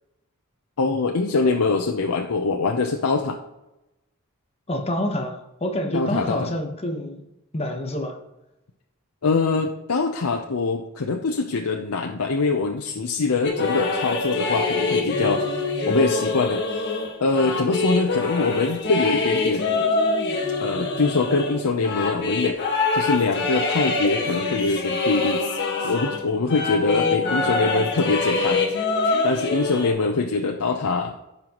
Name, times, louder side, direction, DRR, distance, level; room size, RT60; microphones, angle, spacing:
voice 1, 0.8-3.4 5.9-6.5 9.2-16.9 17.2-19.9 20.6-22.6 22.9-28.7 29.2-31.2, left 3 dB, 85° left, 2 dB, 0.7 m, -24 dB
voice 2, 4.7-7.2 7.5-8.2, left 1 dB, 30° left, 3 dB, 1.1 m, -27 dB
sound 1, 13.4-26.2 26.5-29.9, left 3 dB, 50° left, 1.6 m, -24 dB
14.5 x 5.6 x 3.0 m, 0.94 s
head